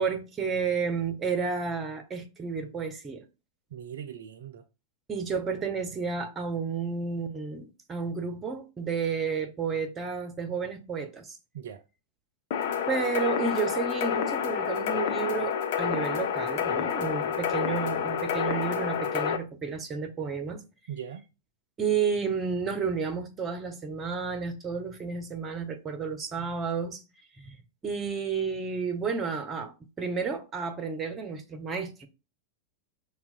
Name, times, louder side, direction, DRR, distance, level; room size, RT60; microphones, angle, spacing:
voice 1, 0.0-3.2 5.1-11.4 12.9-20.6 21.8-27.0 27.4-27.6 27.8-32.1, right 5 dB, 20° right, 0.6 m, -31 dB
voice 2, 3.7-4.6 11.5-11.8 20.9-21.2, right 9 dB, 60° right, 0.3 m, -40 dB
sound 1, 12.5-19.4, left 8 dB, 55° left, 0.4 m, -29 dB
5.6 x 2.1 x 2.5 m
figure-of-eight pair, 90°, 0 cm